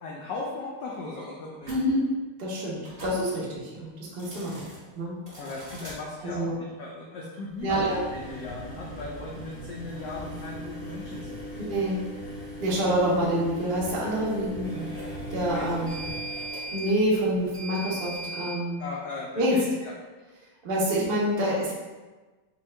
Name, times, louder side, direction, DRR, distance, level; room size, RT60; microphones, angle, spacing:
voice 1, 0.0-1.8 5.4-11.7 15.5-15.9 18.8-19.9, left 3 dB, 90° left, -2 dB, 0.9 m, -38 dB
sound 1, 1.6-1.8 2.8-3.2 4.1-4.8 5.3-6.0 7.6-18.6, equal, 25° right, 0.9 m, -38 dB
voice 2, 2.4-4.7 4.9-5.2 6.2-6.6 7.6-8.0 11.6-12.0 12.6-14.9 15.3-16.0 16.7-18.8 19.4-19.6 20.6-21.7, right 1 dB, 75° right, -5 dB, 0.5 m, -27 dB
4.4 x 2.3 x 3.2 m, 1.3 s
omnidirectional pair, 2.4 m